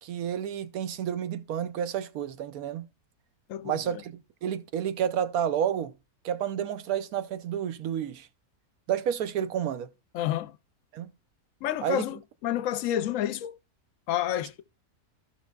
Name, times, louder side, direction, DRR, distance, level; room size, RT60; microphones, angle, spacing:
voice 1, 0.0-2.9 3.6-5.9 6.2-8.3 8.9-9.9 10.9-11.1 11.8-12.0, right 9 dB, 70° right, 1.1 m, -30 dB
voice 2, 3.5-4.0 10.1-10.6 11.6-13.6 14.1-14.6, left 12 dB, 70° left, 0.9 m, -30 dB
15.0 x 5.8 x 2.2 m
omnidirectional pair, 1.6 m